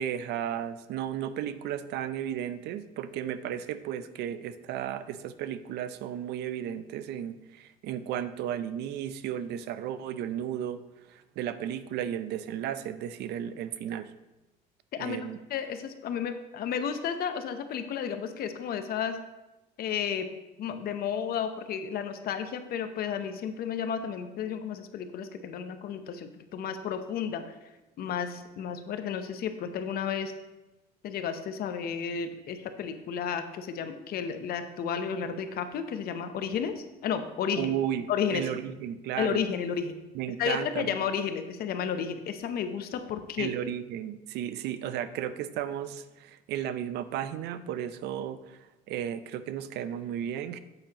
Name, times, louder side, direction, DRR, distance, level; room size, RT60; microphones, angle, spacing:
voice 1, 0.0-10.8 11.1-14.1 15.0-15.4 37.6-39.4 40.1-41.0 43.4-50.6, right 10 dB, 80° right, 13 dB, 0.5 m, -34 dB
voice 2, 15.5-19.2 19.8-20.3 20.6-27.4 28.0-30.3 31.0-37.7 38.1-38.5 39.2-39.9 40.4-43.5, left 7 dB, 65° left, 9 dB, 0.8 m, -32 dB
8.5 x 7.9 x 2.9 m, 1.0 s
cardioid pair, 110°, 17 cm